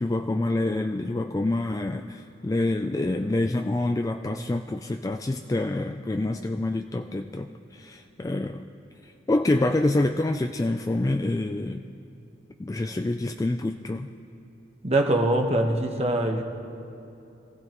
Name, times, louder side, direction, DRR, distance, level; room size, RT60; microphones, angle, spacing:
voice 1, 0.0-8.6 9.0-11.9 12.6-14.1, left 2 dB, 20° left, 5 dB, 0.3 m, -27 dB
voice 2, 14.8-16.4, right 1 dB, 35° right, 3 dB, 1.2 m, -23 dB
25.0 x 16.0 x 3.0 m, 2.8 s
head